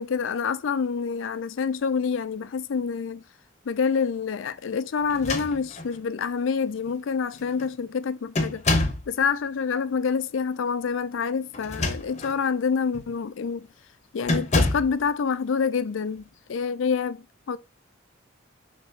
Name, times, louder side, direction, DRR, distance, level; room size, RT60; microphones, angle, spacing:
voice 1, 0.0-3.2 3.7-8.6 9.1-13.7 14.1-17.6, left 6 dB, 70° left, 0.4 m, -27 dB
sound 1, 5.1-6.0 6.9-7.0 7.3-7.7 8.3-9.1 11.5-12.4 12.9-13.1 14.2-15.0, left 2 dB, 35° left, 0.9 m, -27 dB
6.0 x 3.0 x 2.8 m
head